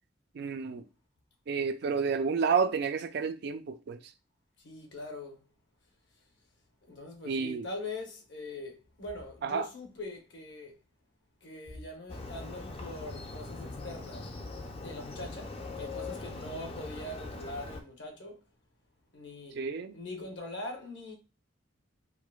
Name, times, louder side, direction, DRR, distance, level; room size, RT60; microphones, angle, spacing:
voice 1, 0.4-0.8 1.5-4.0 7.2-7.7 9.4-9.7 19.5-19.9, right 5 dB, 55° right, 0.3 m, -30 dB
voice 2, 4.6-5.4 6.9-10.7 11.4-14.2 14.8-15.5 15.8-18.4 19.1-19.6 19.9-21.1, left 2 dB, 60° left, 0.9 m, -42 dB
Motorcycle, 12.1-17.8, left 3 dB, 30° left, 0.4 m, -41 dB
4.6 x 2.0 x 2.3 m
head